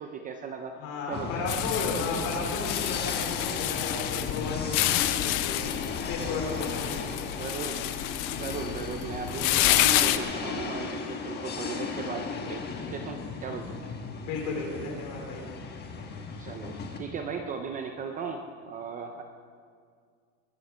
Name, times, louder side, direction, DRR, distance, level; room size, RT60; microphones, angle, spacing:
voice 1, 0.0-0.8 1.1-1.4 7.0-8.0 8.3-13.8 16.4-19.2, right 6 dB, 20° right, 5 dB, 0.4 m, -37 dB
voice 2, 0.7-7.0 14.3-15.4, left 3 dB, 55° left, -1 dB, 4.5 m, -34 dB
sound 1, 1.1-17.0, left 4 dB, 25° left, 1.4 m, -36 dB
sound 2, 1.5-10.2, left 15 dB, 75° left, 0.9 m, -29 dB
22.0 x 12.0 x 4.8 m, 2.1 s
cardioid pair, 175°, 42 cm